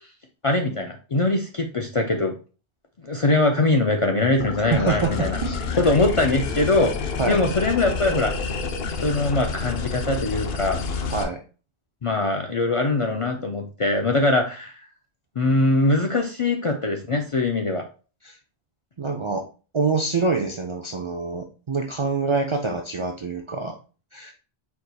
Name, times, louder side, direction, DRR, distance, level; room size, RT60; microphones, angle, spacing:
voice 1, 0.4-2.3 3.0-5.4 5.7-6.9 7.3-8.3 9.0-10.8 12.0-14.8 15.4-17.8, left 2 dB, 50° left, 3 dB, 0.4 m, -22 dB
sound 1, 4.4-11.2, left 5 dB, 70° left, 0.8 m, -29 dB
voice 2, 4.7-5.6 7.2-7.4 11.1-11.4 18.2-18.4 19.0-19.5 19.7-23.8 24.1-24.3, right 4 dB, 50° right, 2 dB, 0.3 m, -25 dB
4.6 x 3.9 x 2.2 m, 0.36 s
omnidirectional pair, 1.1 m